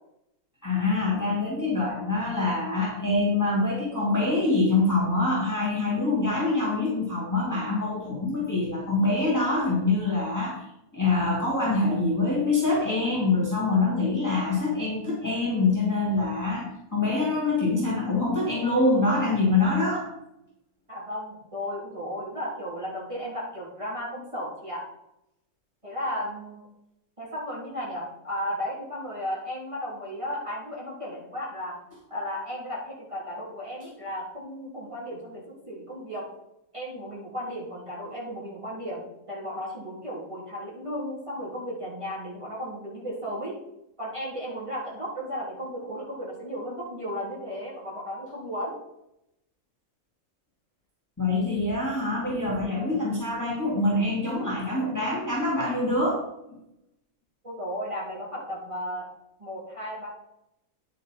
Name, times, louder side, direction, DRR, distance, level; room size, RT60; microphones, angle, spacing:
voice 1, 0.6-10.6 10.9-20.1 51.2-56.2 56.5-56.6, left 2 dB, 10° left, -6 dB, 2.6 m, -25 dB
voice 2, 20.9-24.8 25.8-26.7 27.2-31.7 32.1-36.3 36.7-43.5 44.0-48.8 57.4-59.0 59.4-60.1, equal, 20° right, -6 dB, 3.4 m, -34 dB
10.0 x 6.5 x 4.4 m, 0.83 s
omnidirectional pair, 1.5 m